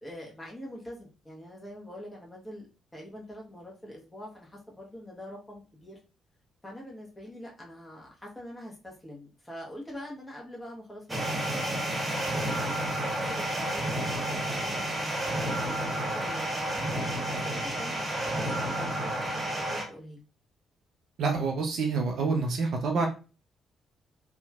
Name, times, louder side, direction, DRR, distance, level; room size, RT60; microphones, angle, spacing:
voice 1, 0.0-2.7 2.9-6.0 6.6-11.6 12.1-16.9 17.3-20.2, equal, 15° left, -3 dB, 1.1 m, -44 dB
sound 1, 11.1-19.8, right 1 dB, 20° right, 0.8 m, -31 dB
voice 2, 21.2-23.1, right 4 dB, 55° right, 2 dB, 0.5 m, -27 dB
2.8 x 2.5 x 2.3 m, 0.33 s
figure-of-eight pair, 40°, 0 cm